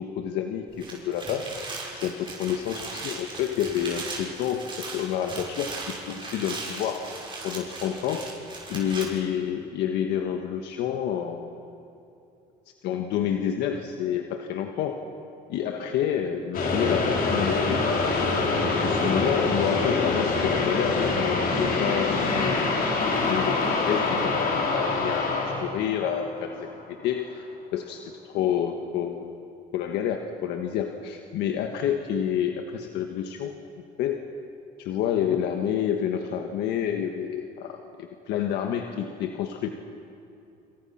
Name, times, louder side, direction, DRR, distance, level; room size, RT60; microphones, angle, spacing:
voice 1, 0.0-1.5 1.9-5.7 6.1-7.1 7.4-8.3 8.7-11.5 12.8-15.0 15.5-17.8 18.5-22.7 23.1-27.5 27.7-29.3 29.7-33.5 34.0-34.2 34.8-39.7, left 9 dB, 85° left, 4 dB, 1.6 m, -29 dB
sound 1, 0.7-9.0, right 3 dB, 30° right, 6.5 m, -38 dB
sound 2, 16.5-26.8, left 3 dB, 60° left, 4.9 m, -25 dB
27.5 x 27.5 x 5.8 m, 2.8 s
cardioid pair, 110°, 17 cm